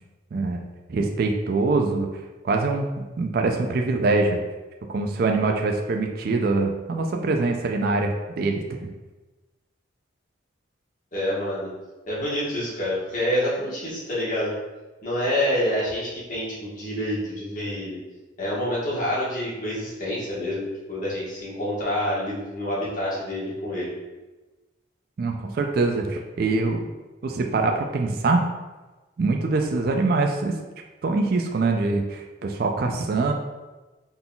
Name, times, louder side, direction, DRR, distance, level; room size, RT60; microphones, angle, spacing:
voice 1, 0.3-0.6 0.9-2.1 2.4-4.4 4.9-8.9 25.2-26.9 27.2-28.4 29.2-30.5 31.0-33.3, right 3 dB, 50° right, 3 dB, 0.3 m, -24 dB
voice 2, 11.1-11.7 12.1-14.5 15.0-18.0 18.4-23.9, left 1 dB, 40° left, -8 dB, 1.3 m, -27 dB
3.9 x 3.8 x 2.3 m, 1.2 s
head